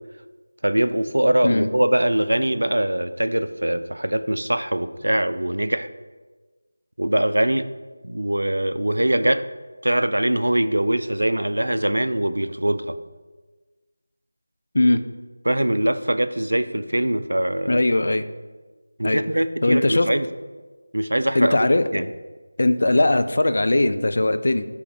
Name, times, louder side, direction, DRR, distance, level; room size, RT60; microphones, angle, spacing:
voice 1, 0.6-5.9 7.0-7.7 8.0-9.4 9.8-13.0 15.5-17.8 19.0-20.3 20.9-21.5 21.9-22.1, right 1 dB, 70° right, 11 dB, 0.5 m, -22 dB
voice 2, 17.7-18.2 19.0-19.2 19.6-20.1 21.3-22.0 22.6-24.6, left 2 dB, 50° left, 9 dB, 0.5 m, -19 dB
9.3 x 3.4 x 4.9 m, 1.3 s
figure-of-eight pair, 165°, 0 cm